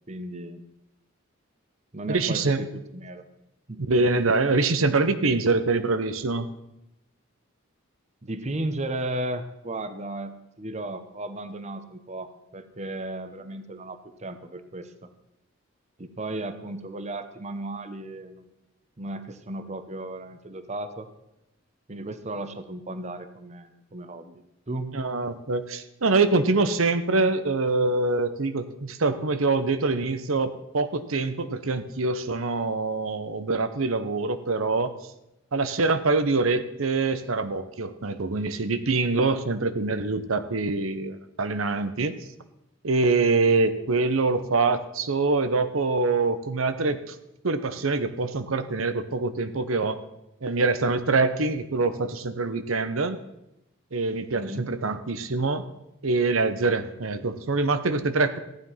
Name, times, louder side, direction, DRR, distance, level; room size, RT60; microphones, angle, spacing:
voice 1, 0.1-0.6 1.9-3.2 3.7-3.8 8.2-14.9 16.0-18.5 19.0-21.1 21.9-25.0 54.3-54.7, right 1 dB, 35° right, 10 dB, 0.9 m, -35 dB
voice 2, 2.1-2.6 3.9-6.5 24.9-34.9 35.5-42.2 42.8-47.2 47.4-50.0 50.4-53.2 53.9-55.6 56.0-58.4, right 3 dB, 85° right, 11 dB, 0.9 m, -24 dB
15.0 x 9.6 x 5.7 m, 0.87 s
head